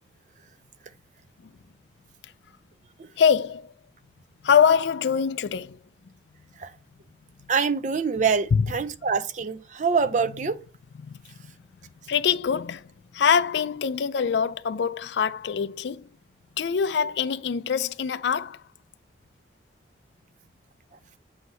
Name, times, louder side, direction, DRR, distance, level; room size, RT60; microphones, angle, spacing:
voice 1, 3.2-3.7 4.4-5.8 8.5-8.7 11.0-11.5 12.1-16.1 16.6-18.6, left 7 dB, 65° left, 0.4 m, -24 dB
voice 2, 7.5-10.6, right 5 dB, 40° right, 0.4 m, -25 dB
7.8 x 2.8 x 5.3 m
head